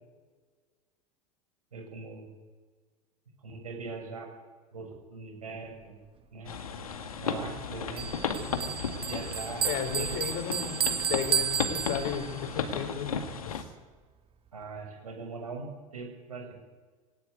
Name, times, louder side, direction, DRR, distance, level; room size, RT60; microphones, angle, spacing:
voice 1, 1.7-2.3 3.4-4.3 4.7-6.0 6.3-6.5 7.2-8.1 8.3-8.7 9.1-9.7 9.9-10.8 14.5-16.5, right 4 dB, 80° right, 2 dB, 6.7 m, -41 dB
sound 1, 6.5-13.6, left 6 dB, 75° left, 2.1 m, -35 dB
Bell, 8.0-12.5, right 8 dB, 30° right, 1.3 m, -32 dB
voice 2, 9.6-13.1 13.5-13.7, left 8 dB, 55° left, 10 dB, 3.8 m, -35 dB
21.0 x 18.0 x 9.4 m, 1.5 s
figure-of-eight pair, 80°, 19 cm